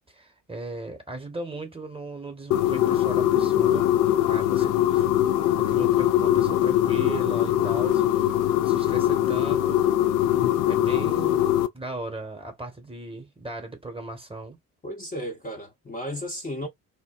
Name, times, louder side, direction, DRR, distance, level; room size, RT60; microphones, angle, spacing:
voice 1, 0.1-3.9 4.3-5.1 5.6-8.4 8.6-9.8 10.7-11.5 11.7-14.6, right 2 dB, 10° right, 1.1 m, -37 dB
sound 1, 2.5-11.7, left 12 dB, 45° left, 0.5 m, -22 dB
voice 2, 14.8-16.7, equal, 15° left, 0.8 m, -34 dB
2.9 x 2.1 x 2.3 m
figure-of-eight pair, 45°, 48 cm